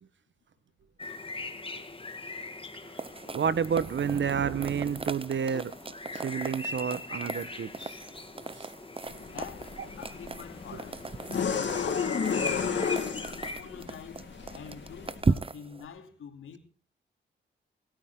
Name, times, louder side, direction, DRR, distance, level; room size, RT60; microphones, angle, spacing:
sound 1, 1.0-13.6, left 3 dB, 25° left, 2.1 m, -42 dB
sound 2, 3.0-15.9, right 3 dB, 25° right, 0.9 m, -37 dB
voice 1, 3.3-5.7 6.1-8.0 8.6-8.7, right 7 dB, 65° right, 1.3 m, -30 dB
sound 3, 9.0-15.2, left 6 dB, 60° left, 3.4 m, -33 dB
voice 2, 9.3-11.1 11.5-13.1 13.4-16.6, left 7 dB, 90° left, 3.0 m, -45 dB
28.5 x 10.0 x 3.9 m
cardioid pair, 70°, 20 cm